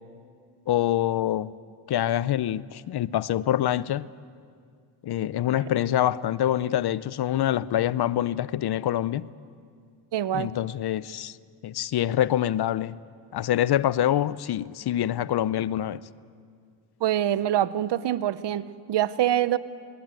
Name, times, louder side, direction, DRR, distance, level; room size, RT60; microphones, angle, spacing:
voice 1, 0.7-1.5 1.9-4.1 5.0-9.3 10.3-11.4 11.6-13.0 13.3-16.0, left 12 dB, 55° left, 0.7 m, -25 dB
voice 2, 10.1-10.5 17.0-19.6, right 12 dB, 60° right, 0.8 m, -25 dB
21.5 x 19.0 x 9.0 m
cardioid pair, 75°, 46 cm